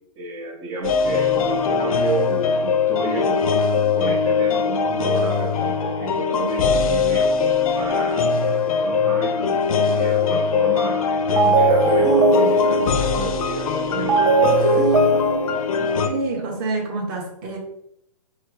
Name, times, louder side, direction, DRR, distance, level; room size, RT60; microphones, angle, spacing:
voice 1, 0.2-3.5 3.9-7.4 7.7-14.9, right 3 dB, 10° right, -4 dB, 0.3 m, -31 dB
sound 1, 0.8-16.1, left 5 dB, 60° left, 0.5 m, -21 dB
sound 2, 10.7-11.0 11.4-16.5, right 2 dB, 75° right, 1.4 m, -19 dB
voice 2, 16.1-17.6, right 2 dB, 35° right, 0 dB, 1.1 m, -27 dB
4.4 x 2.0 x 4.5 m, 0.75 s
hypercardioid pair, 155°, 20 cm